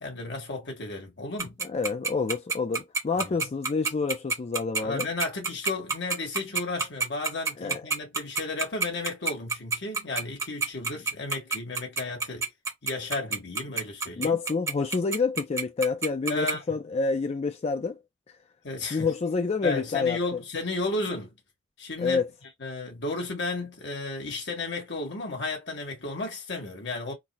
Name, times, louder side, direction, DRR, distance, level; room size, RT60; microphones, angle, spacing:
voice 1, 0.0-1.6 3.1-3.5 4.8-12.5 12.8-14.4 16.3-16.6 18.6-19.1 19.6-21.3 21.8-22.2 22.6-27.1, left 2 dB, 65° left, 1.7 m, -33 dB
Tick-tock, 1.4-16.5, right 4 dB, 15° right, 1.1 m, -27 dB
voice 2, 1.6-5.1 7.6-7.8 14.2-18.0 18.9-20.2 22.0-22.3, left 4 dB, 35° left, 0.4 m, -28 dB
4.0 x 2.1 x 2.8 m
head